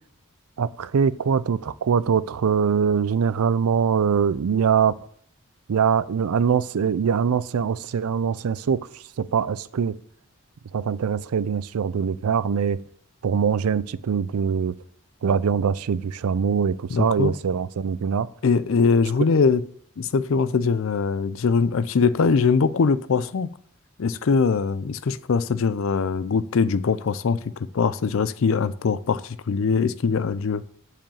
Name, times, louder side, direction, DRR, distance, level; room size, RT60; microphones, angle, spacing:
voice 1, 0.6-4.9 5.7-8.9 9.2-10.0 10.7-12.8 13.2-14.8 15.2-18.3, right 6 dB, 90° right, 0.4 m, -23 dB
voice 2, 16.9-17.3 18.4-19.6 20.0-23.5 24.0-30.6, left 5 dB, 65° left, 0.4 m, -22 dB
7.5 x 5.0 x 7.1 m
head